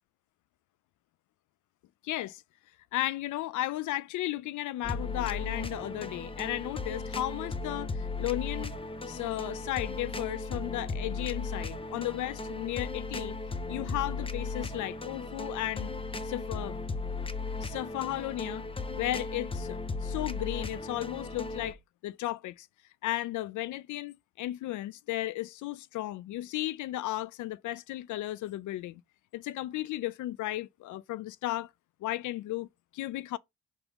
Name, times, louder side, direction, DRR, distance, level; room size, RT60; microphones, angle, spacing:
voice 1, 2.0-2.4 2.9-8.7 9.1-13.4 13.7-15.9 16.2-16.8 17.6-18.7 19.0-21.8 22.0-22.7 23.0-29.0 29.3-31.7 32.0-32.7 32.9-33.4, left 15 dB, 75° left, 0.5 m, -34 dB
sound 1, 4.8-21.7, left 3 dB, 20° left, 0.9 m, -36 dB
5.9 x 3.6 x 5.2 m
cardioid pair, 90°, 30 cm